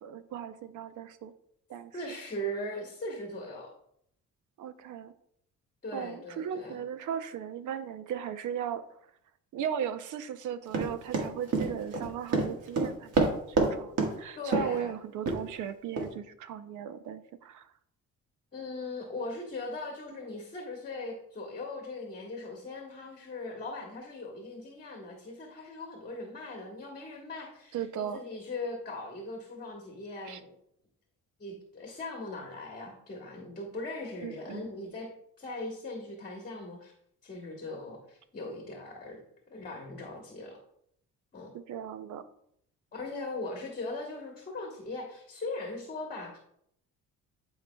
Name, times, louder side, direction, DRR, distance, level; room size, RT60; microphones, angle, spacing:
voice 1, 0.0-1.3 1.7-1.9 4.6-5.1 5.9-8.8 9.5-17.7 27.7-28.2 30.2-30.4 34.2-34.6 41.5-42.2, right 8 dB, 70° right, 11 dB, 0.6 m, -37 dB
voice 2, 1.9-3.7 5.8-6.8 14.4-14.9 18.5-30.5 31.4-35.1 35.4-36.9 37.2-39.2 39.5-40.6 41.3-41.5 42.9-46.4, left 2 dB, 30° left, 0 dB, 1.2 m, -39 dB
Run, 10.7-13.7 14.0-14.1 14.5-14.8 15.3-15.4 16.0-16.1, right 3 dB, 50° right, 1.5 m, -27 dB
11.0 x 4.8 x 2.2 m, 0.72 s
cardioid pair, 135°, 31 cm